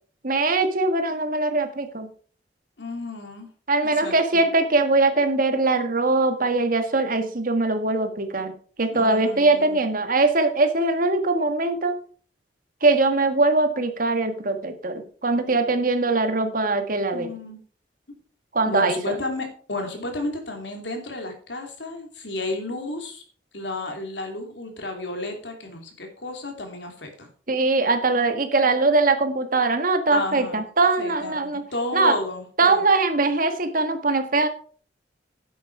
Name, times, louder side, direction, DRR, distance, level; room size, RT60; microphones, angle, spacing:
voice 1, 0.2-2.1 3.7-8.5 8.8-11.9 12.8-17.3 18.5-19.2 27.5-31.6 31.9-32.2 32.6-34.5, right 3 dB, 50° right, 7 dB, 1.5 m, -21 dB
voice 2, 2.8-3.5 3.8-4.4 8.9-9.8 17.1-17.6 18.6-23.2 23.5-27.3 30.1-30.7 31.0-32.8, left 2 dB, 80° left, 4 dB, 3.0 m, -32 dB
10.0 x 8.4 x 4.7 m, 0.43 s
head